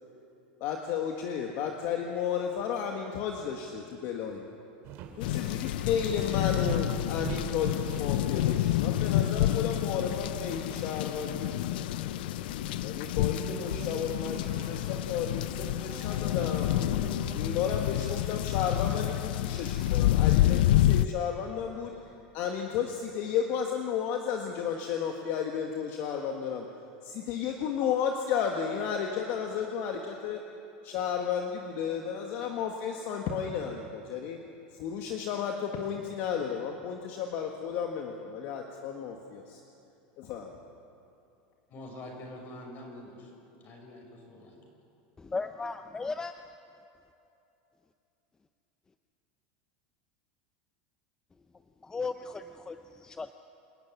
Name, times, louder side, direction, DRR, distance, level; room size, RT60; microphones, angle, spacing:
voice 1, 0.6-4.4 5.2-11.6 12.8-16.7 17.3-21.9 22.3-26.7 27.0-30.4 30.8-34.4 34.7-39.6 40.2-40.5, left 7 dB, 55° left, 2 dB, 1.7 m, -33 dB
sound 1, 4.8-17.1, right 8 dB, 55° right, 3.1 m, -46 dB
sound 2, 5.2-21.1, left 13 dB, 80° left, 0.5 m, -28 dB
sound 3, 9.2-10.9 13.2-18.2, right 5 dB, 75° right, 4.9 m, -46 dB
voice 2, 41.7-43.3 43.6-44.6, left 1 dB, 40° left, 1 dB, 6.4 m, -45 dB
voice 3, 45.3-46.3 51.8-53.3, left 4 dB, 15° left, 8 dB, 0.6 m, -36 dB
27.5 x 11.5 x 9.7 m, 2.8 s
supercardioid pair, 130°, 5 cm